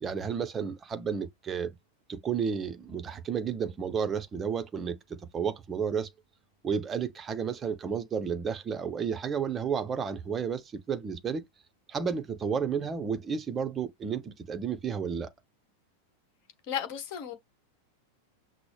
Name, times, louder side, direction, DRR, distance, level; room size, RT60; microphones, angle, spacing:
voice 1, 0.0-1.8 2.1-6.1 6.6-11.4 11.9-15.3, right 6 dB, 20° right, 0.6 m, -32 dB
voice 2, 16.7-17.3, left 9 dB, 45° left, 1.3 m, -34 dB
6.0 x 2.0 x 3.2 m
figure-of-eight pair, 90°, 0 cm